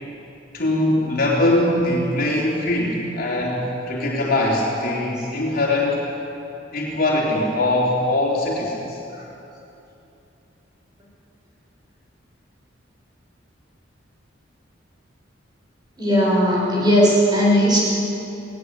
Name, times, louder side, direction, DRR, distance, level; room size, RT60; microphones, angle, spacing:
voice 1, 0.5-6.0 6.7-9.0, left 1 dB, 50° left, -3 dB, 3.7 m, -21 dB
voice 2, 16.0-17.8, equal, 25° right, -5 dB, 7.0 m, -17 dB
19.0 x 18.5 x 8.3 m, 2.8 s
head